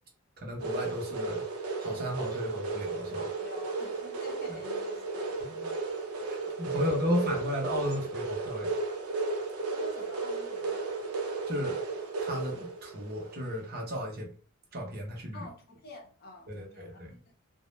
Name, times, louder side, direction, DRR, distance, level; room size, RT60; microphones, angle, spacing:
voice 1, 0.4-1.4 1.8-3.2 4.5-4.6 5.4-5.7 6.3-8.7 11.5-11.8 12.2-14.3 14.7-15.5 16.5-17.2, equal, 45° right, 0.7 m, -34 dB
sound 1, 0.6-13.7, right 3 dB, 90° right, 0.5 m, -34 dB
voice 2, 3.2-5.6 6.2-6.4 6.7-7.2 9.7-10.8 15.3-17.2, left 1 dB, 45° left, 0.6 m, -48 dB
2.1 x 2.0 x 3.0 m
head